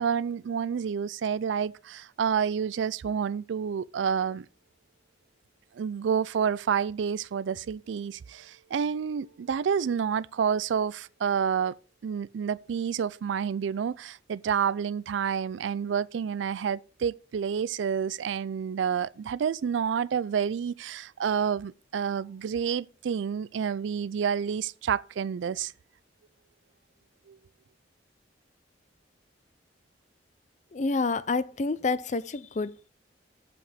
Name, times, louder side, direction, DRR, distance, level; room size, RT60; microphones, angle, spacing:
voice 1, 0.0-4.5 5.8-11.8 12.0-25.7 27.3-27.4, right 7 dB, 80° right, 0.4 m, -29 dB
voice 2, 30.7-32.9, left 3 dB, 40° left, 0.5 m, -28 dB
7.0 x 6.0 x 5.5 m
head